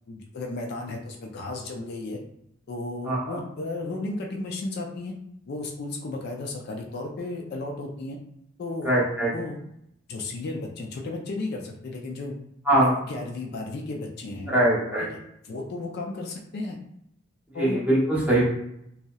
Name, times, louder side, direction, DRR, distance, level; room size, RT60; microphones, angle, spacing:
voice 1, 0.1-2.2 2.7-5.1 5.5-8.2 8.6-8.9 9.3-9.6 10.1-12.3 12.8-14.6 15.4-16.8 17.5-17.8, left 2 dB, 55° left, 1 dB, 0.3 m, -34 dB
voice 2, 3.0-3.4 8.8-9.3 12.7-12.9 14.5-15.1 17.5-18.4, right 1 dB, 5° right, -7 dB, 0.7 m, -22 dB
2.7 x 2.0 x 2.3 m, 0.76 s
head